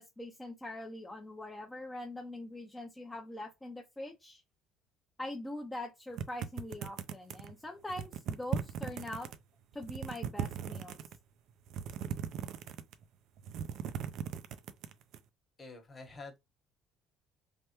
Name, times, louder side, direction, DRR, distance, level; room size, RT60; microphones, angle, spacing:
voice 1, 0.0-4.4 5.2-9.3 9.7-11.0, left 1 dB, 10° left, 0.5 m, -43 dB
sound 1, 6.2-7.5 7.9-9.4 9.7-11.2 11.7-13.0 13.4-15.2, right 8 dB, 65° right, 0.4 m, -38 dB
voice 2, 15.6-16.4, left 3 dB, 25° left, 1.0 m, -47 dB
3.3 x 2.2 x 2.9 m
cardioid pair, 115°, 0 cm